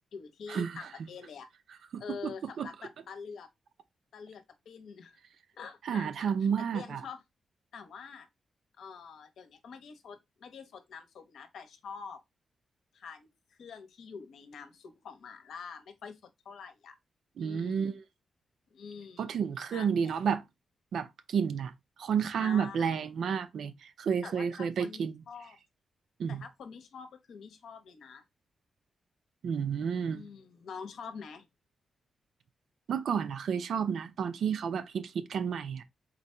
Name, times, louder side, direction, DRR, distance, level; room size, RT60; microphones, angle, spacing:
voice 1, 0.0-1.5 2.0-3.5 4.1-5.2 5.5-6.1 6.7-7.2 7.7-8.3 8.8-12.2 12.9-13.3 13.6-17.0 17.4-18.0 18.7-20.2 22.4-22.9 24.2-25.6 26.3-28.2 30.1-31.5, left 6 dB, 80° left, 0.9 m, -46 dB
voice 2, 1.9-2.3 2.6-2.7 5.9-7.0 17.4-17.9 19.2-20.4 20.9-21.7 22.0-25.1 26.2-26.4 29.4-30.2 32.9-35.8, right 7 dB, 75° right, 0.5 m, -31 dB
4.0 x 2.7 x 4.3 m
wide cardioid pair, 145°, 0 cm